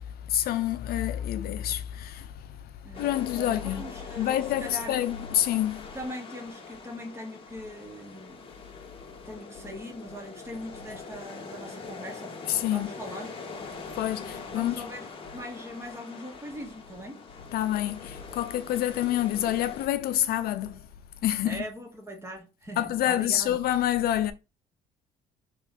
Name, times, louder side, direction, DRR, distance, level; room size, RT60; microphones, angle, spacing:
voice 1, 0.3-2.3 3.0-3.8 4.2-5.8 12.5-12.9 14.0-14.7 17.5-20.8 21.2-21.6 22.8-24.3, left 12 dB, 65° left, 0.4 m, -27 dB
sound 1, 2.9-19.9, left 4 dB, 30° left, 1.2 m, -43 dB
voice 2, 3.3-5.0 5.9-8.5 9.2-12.4 12.6-13.3 14.5-17.2 21.4-23.6, equal, 15° right, 1.2 m, -41 dB
3.2 x 3.0 x 3.9 m
cardioid pair, 110°, 17 cm